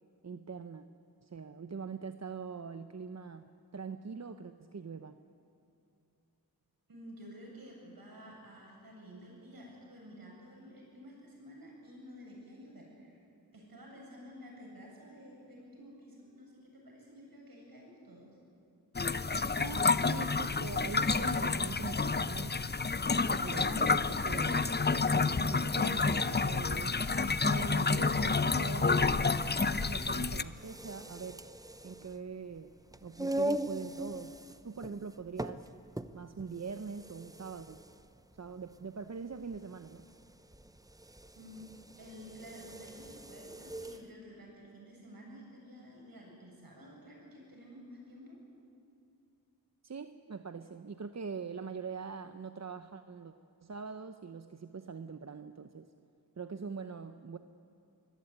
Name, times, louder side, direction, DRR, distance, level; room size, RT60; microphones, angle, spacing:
voice 1, 0.2-0.9 1.2-3.4 3.7-5.2 19.5-22.6 23.3-24.8 25.1-27.0 27.4-31.4 31.8-32.7 33.0-35.7 36.1-37.8 38.3-40.0 49.8-53.3 53.6-55.9 56.4-57.4, right 5 dB, 45° right, 9 dB, 0.8 m, -43 dB
voice 2, 6.9-13.2 13.5-18.3 41.4-41.7 42.0-48.4, equal, 65° right, -1 dB, 7.9 m, -51 dB
sound 1, 18.9-30.4, left 4 dB, 25° left, 0.7 m, -29 dB
sound 2, 30.5-44.1, right 1 dB, 10° right, 0.8 m, -41 dB
23.5 x 17.0 x 9.3 m, 2.6 s
cardioid pair, 50°, 37 cm